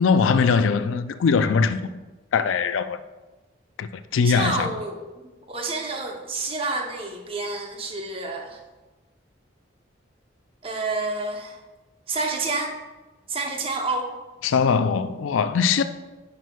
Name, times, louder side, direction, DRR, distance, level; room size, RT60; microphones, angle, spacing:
voice 1, 0.0-1.9 2.3-3.0 3.8-4.7 14.4-15.8, left 5 dB, 85° left, 0.4 m, -21 dB
voice 2, 4.2-5.2 5.5-8.6 10.6-11.6 12.1-12.7 13.3-14.1, right 3 dB, 30° right, 0.7 m, -29 dB
9.3 x 5.9 x 2.3 m
head